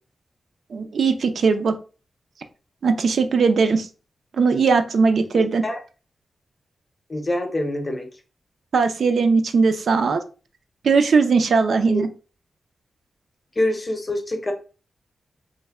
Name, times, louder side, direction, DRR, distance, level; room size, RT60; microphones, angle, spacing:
voice 1, 0.7-1.7 2.8-3.9 4.4-5.6 8.7-10.2 10.8-12.1, right 4 dB, 65° right, 7 dB, 0.4 m, -19 dB
voice 2, 5.3-5.8 7.1-8.1 11.9-12.0 13.6-14.5, left 1 dB, 25° left, 4 dB, 0.6 m, -25 dB
3.2 x 2.1 x 3.4 m, 0.35 s
wide cardioid pair, 155°, 0 cm